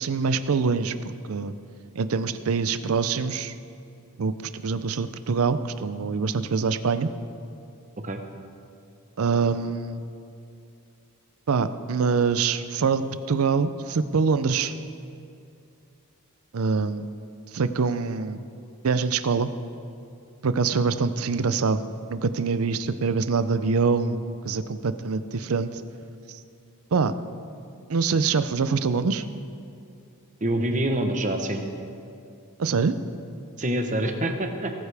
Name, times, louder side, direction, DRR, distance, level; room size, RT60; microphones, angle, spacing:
voice 1, 0.0-1.5 2.0-3.5 4.2-7.1 9.2-10.0 11.5-14.7 16.5-17.1 17.5-18.4 18.8-19.5 20.4-21.8 22.1-25.8 26.3-26.4 26.9-27.1 27.9-29.2 32.6-33.0, right 5 dB, 70° right, 12 dB, 0.5 m, -24 dB
voice 2, 30.4-31.6 33.6-34.7, right 1 dB, 35° right, 5 dB, 0.9 m, -26 dB
18.5 x 9.7 x 3.5 m, 2.5 s
head